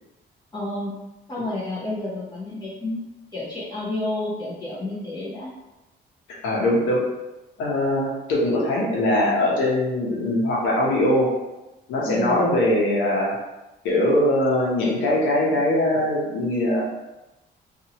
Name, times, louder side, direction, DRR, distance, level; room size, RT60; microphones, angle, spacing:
voice 1, 0.5-0.9 1.3-3.1 3.3-5.5 12.0-12.4, left 2 dB, 20° left, -10 dB, 0.9 m, -30 dB
voice 2, 6.4-7.0 7.6-11.3 11.9-13.3 13.8-16.8, left 1 dB, 90° left, -4 dB, 0.9 m, -21 dB
2.8 x 2.5 x 2.9 m, 1.0 s
cardioid pair, 90°, 20 cm